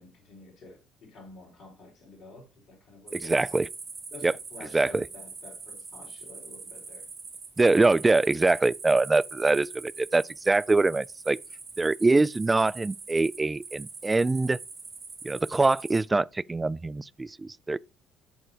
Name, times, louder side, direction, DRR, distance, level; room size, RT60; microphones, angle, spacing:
voice 1, 0.0-3.5 4.1-7.0, left 2 dB, 60° left, 4.8 m, -49 dB
voice 2, 3.1-3.7 4.2-4.3 4.7-5.0 7.6-11.4 11.8-14.6 15.2-17.8, right 3 dB, 20° right, 0.3 m, -24 dB
sound 1, 3.1-16.0, right 4 dB, 50° right, 2.9 m, -43 dB
13.5 x 4.5 x 2.9 m
hypercardioid pair, 55°, 0 cm